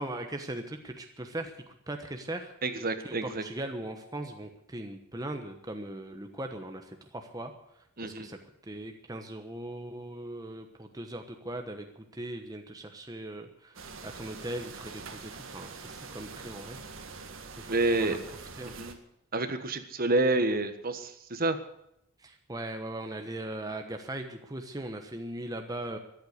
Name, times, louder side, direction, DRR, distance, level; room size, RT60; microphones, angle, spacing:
voice 1, 0.0-2.5 3.0-7.5 8.0-8.4 8.7-16.8 17.6-18.2 18.6-18.7 22.2-26.0, right 1 dB, 20° right, 5 dB, 1.1 m, -39 dB
voice 2, 2.6-3.4 8.0-8.3 17.7-18.2 18.6-19.0 19.3-21.6, right 2 dB, 45° right, 9 dB, 1.4 m, -28 dB
sound 1, 13.8-19.0, right 4 dB, 65° right, 1.8 m, -44 dB
14.0 x 11.5 x 8.0 m, 0.78 s
head